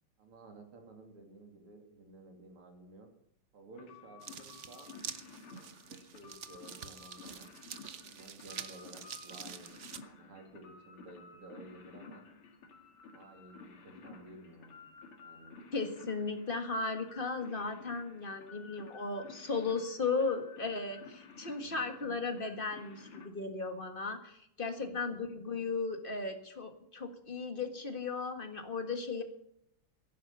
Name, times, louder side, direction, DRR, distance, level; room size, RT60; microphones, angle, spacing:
voice 1, 0.2-3.1 3.5-4.9 5.9-7.5 8.0-12.3 13.1-14.9 15.2-15.6 21.6-22.2 24.8-25.1, right 2 dB, 85° right, 4 dB, 3.6 m, -54 dB
sound 1, 3.7-23.3, left 4 dB, 75° left, 3.0 m, -53 dB
sound 2, 4.2-10.0, right 8 dB, 60° right, 0.7 m, -47 dB
voice 2, 15.7-29.2, left 4 dB, 25° left, 7 dB, 1.7 m, -36 dB
15.0 x 11.0 x 6.8 m, 0.74 s
omnidirectional pair, 2.4 m